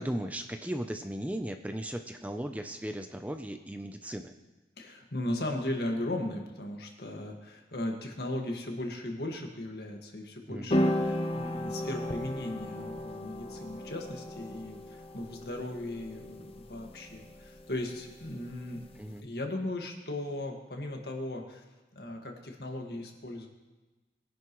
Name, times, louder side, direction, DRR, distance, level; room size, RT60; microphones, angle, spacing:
voice 1, 0.0-4.3 10.5-10.9 18.9-19.3, right 1 dB, 10° right, 6 dB, 0.5 m, -37 dB
voice 2, 4.8-18.8 19.2-21.6 22.0-23.5, left 1 dB, 60° left, 2 dB, 1.9 m, -37 dB
sound 1, 10.7-19.1, left 1 dB, 35° left, 0.7 m, -35 dB
21.5 x 10.5 x 3.1 m, 1.2 s
head